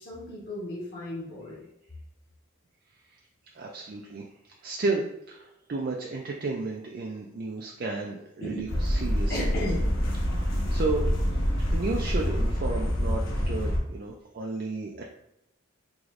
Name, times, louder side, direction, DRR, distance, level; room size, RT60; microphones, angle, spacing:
voice 1, 0.0-1.7 8.4-8.7 9.3-9.8, left 1 dB, 50° left, -6 dB, 1.2 m, -34 dB
voice 2, 3.5-4.2 4.6-9.4 10.3-11.0 11.7-15.0, right 3 dB, 45° right, 0 dB, 0.4 m, -33 dB
sound 1, 8.7-13.8, equal, 75° left, 1.0 m, -26 dB
4.8 x 3.0 x 2.5 m, 0.84 s
head